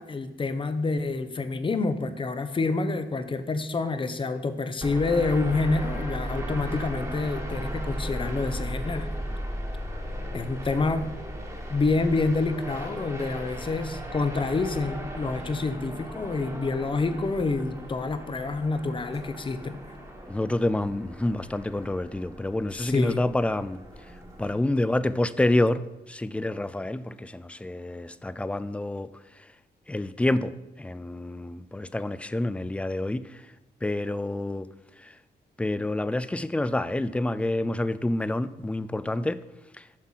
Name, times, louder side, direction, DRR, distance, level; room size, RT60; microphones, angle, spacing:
voice 1, 0.0-9.1 10.3-11.1 11.7-19.8 22.7-23.2, left 3 dB, 30° left, 0.7 m, -27 dB
sound 1, 4.8-24.5, equal, 15° right, 1.5 m, -36 dB
voice 2, 20.3-23.8 24.4-29.1 29.4-29.5 29.9-33.5 33.8-34.7 35.0-35.2 35.6-39.4 39.7-39.9, left 1 dB, 5° left, 0.3 m, -28 dB
7.4 x 6.4 x 5.7 m
cardioid pair, 110°, 18 cm